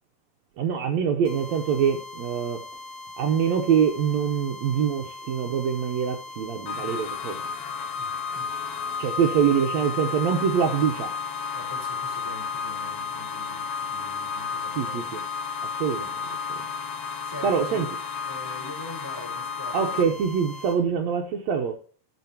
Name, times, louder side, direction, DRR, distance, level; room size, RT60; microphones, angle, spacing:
voice 1, 0.6-2.6 3.2-7.4 9.0-11.1 14.8-15.2 15.6-16.2 17.4-17.9 19.7-21.7, right 7 dB, 80° right, 1.6 m, -24 dB
sound 1, 1.2-20.8, left 2 dB, 40° right, 2.2 m, -41 dB
sound 2, 6.7-20.0, left 6 dB, 70° left, 3.1 m, -32 dB
voice 2, 8.0-8.5 9.2-9.6 11.5-15.1 17.2-20.2, left 1 dB, 5° left, 4.5 m, -43 dB
16.5 x 6.3 x 2.8 m
omnidirectional pair, 4.4 m